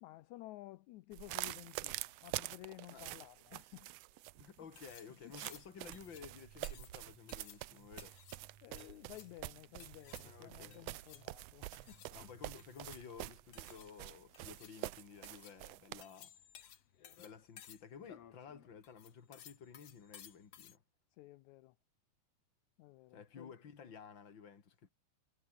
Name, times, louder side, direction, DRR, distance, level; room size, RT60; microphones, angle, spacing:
voice 1, 0.0-3.9 4.6-4.7 5.2-5.6 8.6-12.4 21.2-21.8 22.8-23.5, left 17 dB, 80° left, 2.0 m, -54 dB
sound 1, 1.1-16.0, right 17 dB, 80° right, 1.4 m, -46 dB
voice 2, 4.3-8.2 10.2-10.9 12.1-16.4 17.2-20.8 23.1-24.9, left 6 dB, 40° left, 2.9 m, -54 dB
sound 2, 4.5-20.8, left 10 dB, 55° left, 2.4 m, -59 dB
sound 3, 5.9-13.9, right 9 dB, 60° right, 2.7 m, -63 dB
omnidirectional pair, 3.5 m